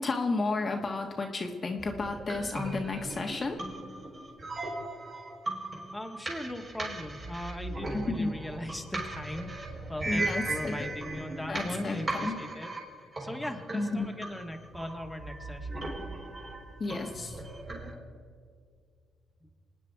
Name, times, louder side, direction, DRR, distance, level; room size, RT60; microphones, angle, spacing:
voice 1, 0.0-3.6 7.9-8.3 10.0-10.8 11.5-12.4 13.7-14.1 16.8-17.4, left 3 dB, 35° left, 3 dB, 1.5 m, -32 dB
sound 1, 1.8-17.9, right 2 dB, 35° right, 4.3 m, -38 dB
voice 2, 5.9-12.7 13.2-15.9, left 1 dB, 5° left, 2 dB, 1.8 m, -39 dB
27.0 x 9.7 x 4.7 m, 2.1 s
cardioid pair, 90°, 0 cm